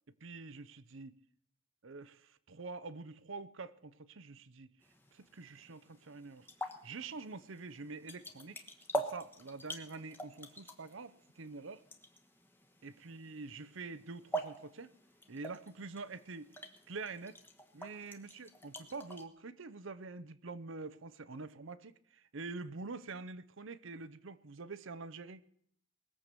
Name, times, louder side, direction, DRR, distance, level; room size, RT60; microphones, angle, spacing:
voice 1, 0.2-1.1 1.8-4.7 5.1-8.6 8.9-11.8 12.8-14.9 15.3-16.5 16.9-17.4 17.7-25.4, right 3 dB, 60° right, 15 dB, 0.7 m, -46 dB
sound 1, 4.8-19.2, right 1 dB, 10° left, 1.1 m, -45 dB
20.5 x 7.8 x 6.8 m, 0.67 s
head